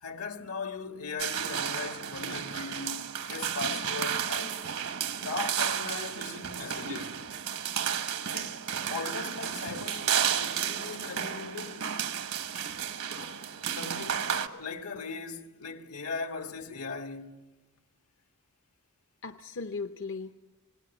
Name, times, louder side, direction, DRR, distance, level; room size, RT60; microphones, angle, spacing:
voice 1, 0.0-4.6 5.2-7.2 8.3-8.6 8.9-11.9 13.7-17.4, left 4 dB, 80° left, 1.6 m, -39 dB
sound 1, 1.2-14.5, right 8 dB, 75° right, 1.2 m, -32 dB
voice 2, 13.1-13.4 14.5-14.6 19.2-20.3, left 4 dB, 60° left, 0.7 m, -39 dB
26.0 x 18.5 x 7.0 m
head